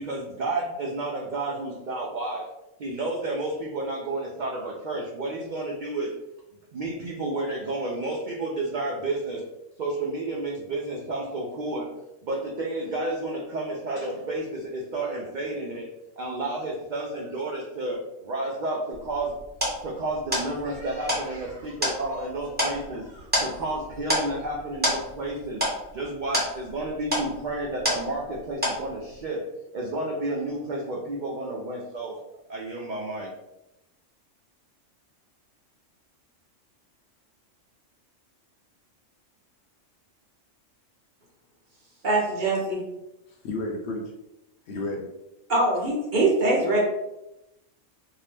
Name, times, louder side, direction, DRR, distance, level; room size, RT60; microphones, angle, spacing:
voice 1, 0.0-2.4 2.8-6.1 6.7-9.5 9.8-11.9 12.2-15.9 16.2-19.4 19.8-25.6 25.9-29.4 29.7-32.2 32.5-33.3, right 2 dB, 75° right, -2 dB, 0.4 m, -31 dB
sound 1, 18.9-28.4 28.6-29.2, equal, 10° right, 1.0 m, -29 dB
voice 2, 42.0-42.8 45.5-46.8, right 2 dB, 45° right, -4 dB, 0.9 m, -23 dB
voice 3, 43.4-44.0 44.7-45.1, left 2 dB, 65° left, 1 dB, 0.7 m, -31 dB
2.7 x 2.1 x 3.2 m, 0.90 s
omnidirectional pair, 1.3 m